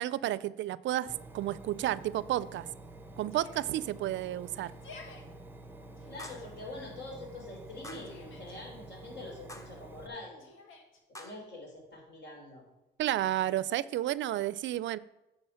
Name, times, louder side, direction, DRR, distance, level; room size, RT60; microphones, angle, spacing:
voice 1, 0.0-2.7 3.2-4.7 13.0-15.0, right 13 dB, 70° right, 19 dB, 0.4 m, -31 dB
Engine, 1.1-10.1, right 2 dB, 10° right, 0.8 m, -49 dB
Yell, 3.3-3.8 4.6-5.2 6.0-6.5 7.7-8.6 10.4-11.0, left 4 dB, 80° left, 1.6 m, -52 dB
sound 1, 4.8-4.9 6.2-6.6 7.8-8.2 9.5-9.8 11.1-11.3, left 1 dB, 15° left, 1.1 m, -47 dB
voice 2, 6.0-10.5 11.2-12.6, left 2 dB, 60° left, 0 dB, 3.6 m, -45 dB
9.0 x 5.6 x 5.7 m, 0.98 s
cardioid pair, 90°, 20 cm